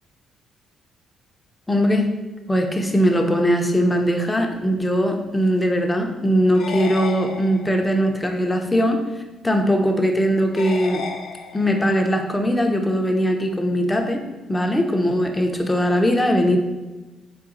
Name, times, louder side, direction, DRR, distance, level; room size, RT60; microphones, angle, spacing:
voice 1, 1.7-2.1 2.5-9.0 9.4-11.0 11.5-14.2 14.5-16.6, equal, 10° left, 3 dB, 0.5 m, -20 dB
sound 1, 6.5-8.0 10.6-12.0, left 4 dB, 65° left, 0.5 m, -33 dB
4.0 x 3.8 x 2.6 m, 1.2 s
cardioid pair, 90°, 0 cm